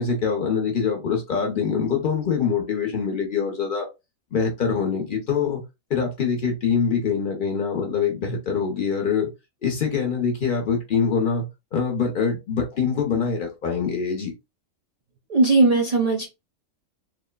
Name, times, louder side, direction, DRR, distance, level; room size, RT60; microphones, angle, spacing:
voice 1, 0.0-3.9 4.3-5.6 5.9-9.3 9.6-14.3, left 6 dB, 50° left, 0.7 m, -24 dB
voice 2, 15.3-16.3, right 3 dB, 85° right, 0.3 m, -18 dB
3.1 x 2.0 x 2.2 m
omnidirectional pair, 1.4 m